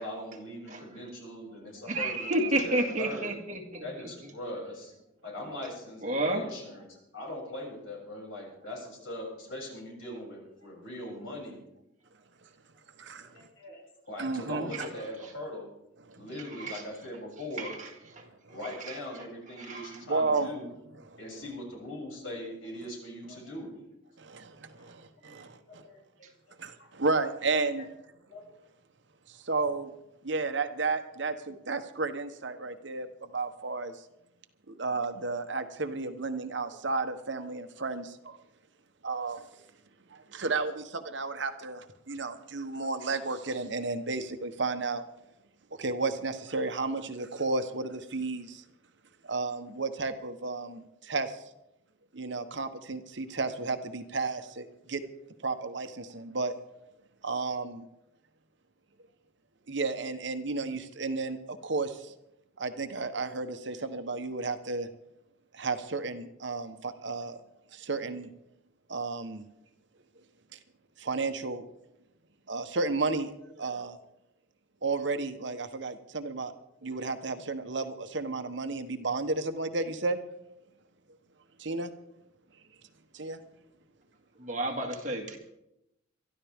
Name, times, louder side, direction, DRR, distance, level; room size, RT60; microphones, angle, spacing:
voice 1, 0.0-3.3 3.8-4.9 5.2-11.6 13.3-13.8 14.1-15.7 16.2-17.7 18.5-20.7 21.2-23.8 24.8-24.9 25.3-26.0 26.8-26.9 27.8-27.9 28.2-28.5, left 1 dB, 85° left, -2 dB, 7.1 m, -41 dB
voice 2, 1.9-3.8 6.0-6.4 16.6-16.7 17.6-17.7 19.7-19.9 84.4-85.4, right 1 dB, 40° right, 2 dB, 2.1 m, -30 dB
voice 3, 13.0-13.3 14.2-14.7 16.1-16.3 20.1-20.5 24.2-25.8 26.6-27.9 29.4-29.9 30.2-33.1 33.3-33.9 34.7-38.4 39.0-39.4 40.1-45.0 45.8-48.6 49.2-51.4 52.1-55.0 55.4-56.6 57.2-57.9 59.7-62.1 62.6-64.9 65.5-67.4 67.7-68.3 68.9-69.4 71.0-71.6 72.5-73.3 73.6-74.0 74.8-76.5 76.8-80.2 81.6-81.9 83.1-83.4, right 3 dB, 65° right, 9 dB, 1.1 m, -32 dB
23.0 x 13.0 x 3.6 m, 0.85 s
head